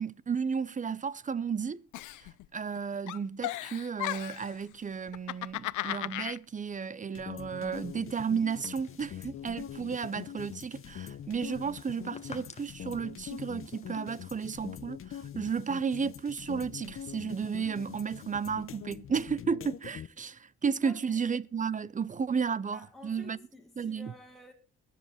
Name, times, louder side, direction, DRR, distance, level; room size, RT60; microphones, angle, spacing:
voice 1, 0.0-1.8 2.2-23.4 23.8-24.1, right 6 dB, 25° right, 0.6 m, -33 dB
Giggle, 1.9-2.8 3.1-4.5 5.1-6.4, left 16 dB, 80° left, 0.6 m, -35 dB
sound 1, 7.2-20.1, left 9 dB, 45° left, 0.7 m, -44 dB
sound 2, 7.3-14.0, left 4 dB, 20° left, 1.3 m, -55 dB
voice 2, 20.8-21.2 22.7-24.5, left 2 dB, ahead, 1.8 m, -51 dB
22.0 x 7.5 x 4.2 m
cardioid pair, 90°, 30 cm